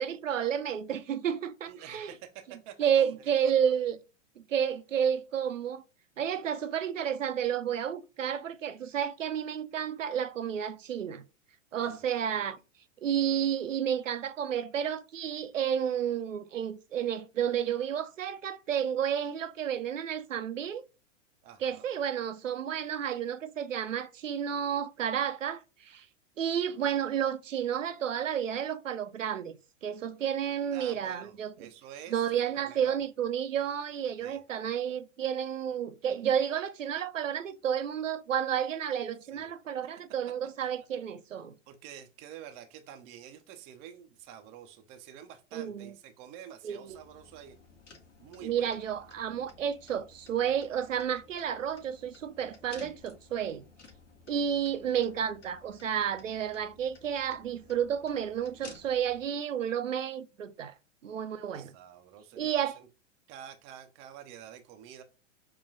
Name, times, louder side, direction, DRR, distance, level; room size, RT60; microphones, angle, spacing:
voice 1, 0.0-2.1 2.8-4.0 4.4-5.8 6.2-11.2 11.7-12.6 13.0-20.8 21.6-26.1 26.4-29.6 29.8-31.5 32.1-41.5 45.5-45.9 46.6-47.0 48.4-53.6 54.3-60.7 61.0-61.7 62.4-62.8, right 8 dB, 85° right, 0.5 m, -31 dB
voice 2, 1.7-3.3 11.8-12.0 12.3-12.4 21.4-21.9 30.7-33.0 34.2-34.4 39.3-39.5 41.7-47.6 48.2-48.8 61.2-62.9 63.3-65.0, right 9 dB, 20° right, 0.3 m, -49 dB
sound 1, 46.9-59.2, left 4 dB, 70° left, 1.0 m, -55 dB
5.5 x 2.2 x 2.6 m
figure-of-eight pair, 100°, 37 cm